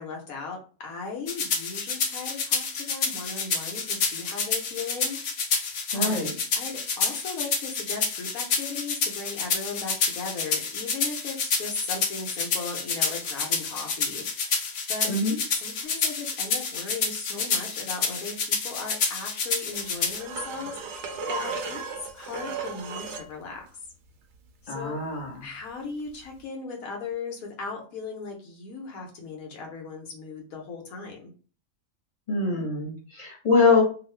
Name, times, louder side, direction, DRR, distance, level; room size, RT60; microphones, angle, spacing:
voice 1, 0.0-6.3 6.5-15.1 15.5-21.8 22.1-23.7 24.6-25.0 25.4-31.3, left 4 dB, 85° left, 0 dB, 1.2 m, -37 dB
sound 1, 1.3-20.2, left 5 dB, 65° left, 0.9 m, -28 dB
voice 2, 5.9-6.3 15.1-15.4 24.7-25.4 32.3-33.8, left 4 dB, 30° left, -3 dB, 1.2 m, -24 dB
sound 2, 19.7-23.3 26.2-26.3, right 4 dB, 65° right, 0.8 m, -35 dB
2.7 x 2.4 x 3.1 m, 0.39 s
omnidirectional pair, 1.4 m